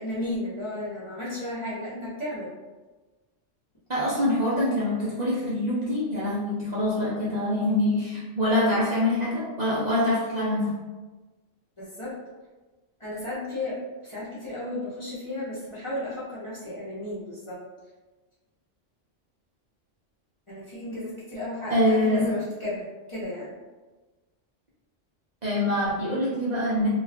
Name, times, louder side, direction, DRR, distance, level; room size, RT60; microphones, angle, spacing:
voice 1, 0.0-2.5 11.8-12.1 13.0-13.8 14.0-17.6 20.5-23.5, left 1 dB, 30° left, -10 dB, 0.7 m, -33 dB
voice 2, 3.9-10.7 21.7-22.3 25.4-26.9, left 1 dB, 45° right, -9 dB, 0.6 m, -25 dB
2.4 x 2.3 x 3.4 m, 1.2 s
omnidirectional pair, 1.3 m